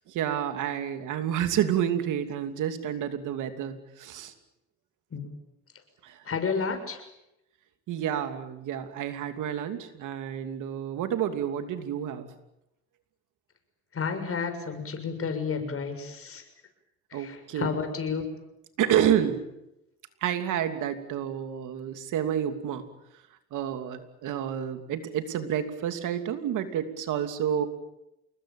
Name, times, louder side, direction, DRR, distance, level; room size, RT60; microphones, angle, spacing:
voice 1, 0.1-4.3 6.0-6.2 7.9-12.3 17.1-17.7 18.8-19.4 20.2-22.9 23.5-27.7, right 9 dB, 85° right, 8 dB, 3.0 m, -29 dB
voice 2, 6.3-7.0 13.9-16.4 17.1-18.2, left 5 dB, 50° left, 7 dB, 6.7 m, -31 dB
28.5 x 21.0 x 9.0 m, 0.89 s
cardioid pair, 90°, 30 cm